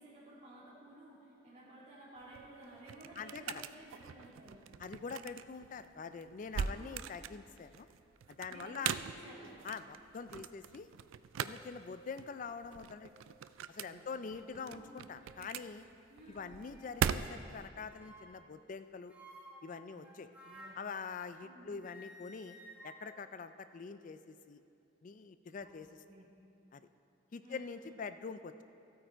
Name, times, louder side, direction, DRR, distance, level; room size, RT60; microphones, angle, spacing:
voice 1, 0.0-4.6 6.7-7.1 8.5-9.5 13.8-14.9 16.1-16.5 19.9-20.0 20.4-20.8 21.4-21.8 25.6-25.7 26.1-26.3 27.4-27.7, right 1 dB, 35° right, -9 dB, 2.6 m, -54 dB
sound 1, 2.2-17.7, right 8 dB, 85° right, 0.3 m, -42 dB
voice 2, 3.2-3.6 4.8-7.9 8.3-9.0 9.6-10.9 11.4-13.1 13.7-15.8 16.3-19.1 19.6-20.3 20.8-22.6 22.8-24.6 25.0-25.9 26.7-26.9 27.3-28.6, left 5 dB, 40° left, 11 dB, 0.4 m, -45 dB
sound 2, 8.3-8.4 8.7-9.1 9.9-10.0 11.2-12.0 12.4-12.6 13.0-13.2 13.8-14.1 14.7-15.5 16.5-16.9 17.9-18.5 19.1-21.6 21.8-24.1, right 1 dB, 10° right, 1.3 m, -57 dB
14.0 x 8.7 x 4.5 m, 2.7 s
head